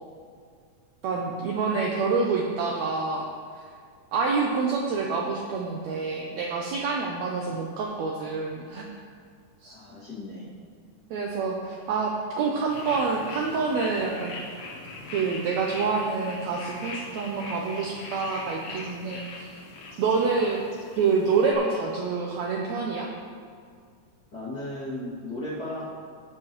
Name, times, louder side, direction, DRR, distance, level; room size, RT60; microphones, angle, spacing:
voice 1, 1.0-3.2 4.1-8.9 9.6-9.7 11.1-14.3 15.1-19.6 20.0-20.6 21.0-23.1, right 4 dB, 80° right, -1 dB, 1.6 m, -27 dB
voice 2, 9.6-10.5 24.3-25.8, left 1 dB, 35° left, -8 dB, 2.1 m, -35 dB
sound 1, 12.7-21.5, left 2 dB, 85° left, 2.9 m, -41 dB
17.5 x 6.8 x 3.1 m, 2.1 s
omnidirectional pair, 3.9 m